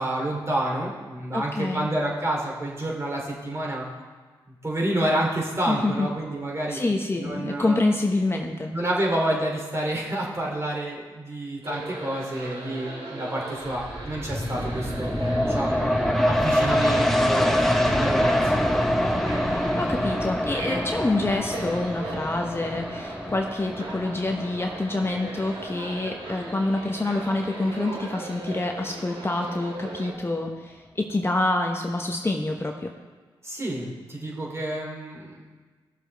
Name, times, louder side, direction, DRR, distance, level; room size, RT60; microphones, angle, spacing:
voice 1, 0.0-3.8 4.5-6.8 7.2-7.8 8.7-15.1 15.4-15.9 16.2-17.6 17.9-18.7 33.4-35.4, right 1 dB, 30° right, -2 dB, 3.0 m, -29 dB
voice 2, 1.3-1.9 5.7-6.1 6.7-8.7 19.8-32.9, left 2 dB, 25° left, 2 dB, 1.0 m, -27 dB
sound 1, 11.6-30.1, right 2 dB, 80° right, 2.1 m, -38 dB
sound 2, 13.6-26.9 27.4-27.5, equal, 5° left, 1.1 m, -25 dB
16.0 x 7.0 x 3.5 m, 1.4 s
cardioid pair, 55°, 9 cm